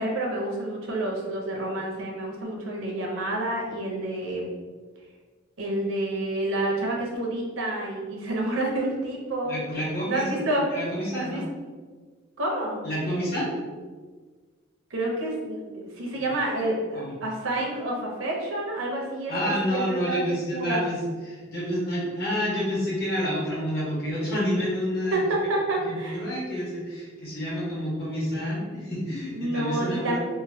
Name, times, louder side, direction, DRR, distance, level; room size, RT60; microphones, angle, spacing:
voice 1, 0.0-4.5 5.6-9.5 10.1-10.7 11.1-11.4 12.4-12.8 14.9-20.2 20.5-20.8 25.1-26.3 29.3-30.2, right 1 dB, 70° right, -1 dB, 0.7 m, -29 dB
voice 2, 9.4-11.5 12.8-13.5 16.9-17.1 19.3-25.2 25.8-30.2, equal, 55° left, -6 dB, 1.3 m, -29 dB
3.0 x 2.5 x 2.7 m, 1.4 s
head